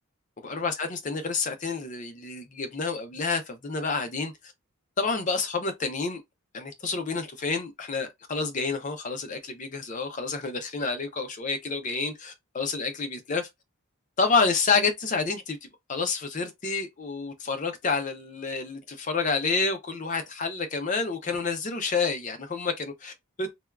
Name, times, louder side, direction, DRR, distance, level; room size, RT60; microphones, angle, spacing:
voice 1, 0.4-4.5 5.0-6.2 6.5-13.5 14.2-15.6 15.9-23.5, left 4 dB, 35° left, 0.5 m, -29 dB
3.4 x 2.2 x 2.3 m
head